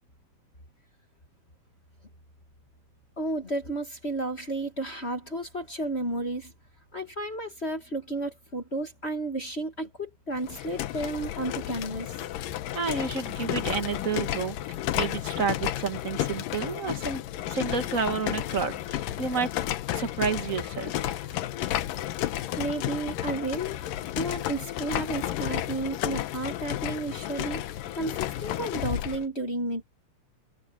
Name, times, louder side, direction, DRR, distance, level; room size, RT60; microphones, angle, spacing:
voice 1, 3.2-6.5 6.9-12.1 22.6-23.8 24.2-27.6 27.9-29.8, right 2 dB, 25° left, 1.8 m, -32 dB
sound 1, 10.4-29.2, left 13 dB, 85° left, 2.7 m, -32 dB
voice 2, 12.7-14.6 14.9-19.5 19.9-21.4, right 5 dB, 35° right, 1.3 m, -30 dB
omnidirectional pair, 3.8 m